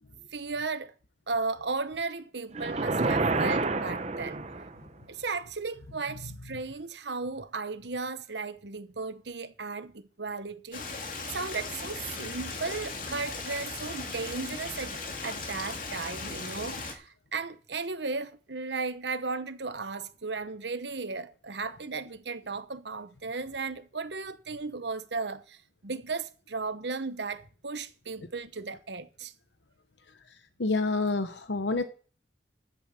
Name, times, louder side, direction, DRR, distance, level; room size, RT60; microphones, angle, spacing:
voice 1, 0.3-0.9 1.3-4.4 5.1-11.0 11.3-25.6 25.8-29.3, right 4 dB, 80° right, 1.1 m, -35 dB
sound 1, 2.5-4.9, right 3 dB, 40° right, 0.9 m, -28 dB
Stream, 10.7-16.9, left 3 dB, 50° left, 2.6 m, -37 dB
voice 2, 30.6-31.8, left 3 dB, 90° left, 1.1 m, -27 dB
11.0 x 7.9 x 7.7 m
head